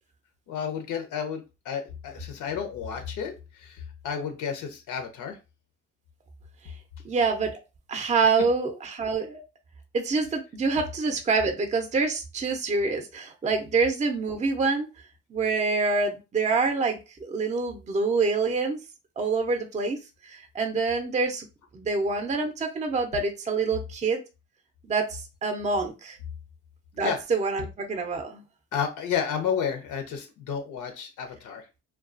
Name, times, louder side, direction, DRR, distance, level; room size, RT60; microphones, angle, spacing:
voice 1, 0.5-5.4 27.0-27.2 28.7-31.6, left 7 dB, 80° left, 6 dB, 0.7 m, -31 dB
voice 2, 7.0-7.5 7.9-9.4 9.9-14.9 15.3-18.8 19.2-20.0 20.2-21.5 21.7-24.2 24.9-26.2 26.9-28.4, right 4 dB, 25° right, 5 dB, 0.5 m, -26 dB
2.3 x 2.2 x 2.4 m, 0.28 s
cardioid pair, 90°, 30 cm